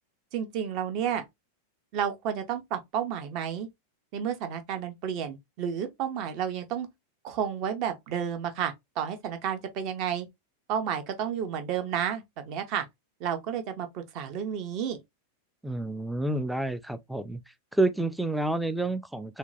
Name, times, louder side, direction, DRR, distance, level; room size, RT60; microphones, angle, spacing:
voice 1, 0.3-1.2 1.9-3.7 4.1-6.9 7.2-10.3 10.7-12.8 13.2-15.0, right 8 dB, 40° right, 0.7 m, -31 dB
voice 2, 15.6-17.4 17.7-19.4, right 2 dB, ahead, 0.3 m, -29 dB
3.7 x 2.2 x 2.6 m
figure-of-eight pair, 90°, 0 cm